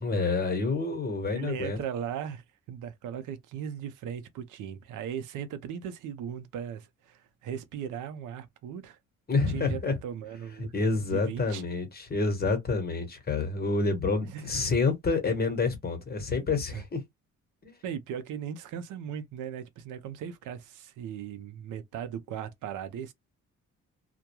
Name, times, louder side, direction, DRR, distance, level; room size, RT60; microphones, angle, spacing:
voice 1, 0.0-1.8 9.3-10.0 10.7-17.0 17.6-17.7, left 4 dB, 30° left, 1.1 m, -28 dB
voice 2, 1.3-9.0 9.5-10.7 11.1-11.6 14.2-14.5 16.7-16.8 17.8-23.1, right 8 dB, 85° right, 0.6 m, -38 dB
2.2 x 2.2 x 2.9 m
cardioid pair, 90°, 30 cm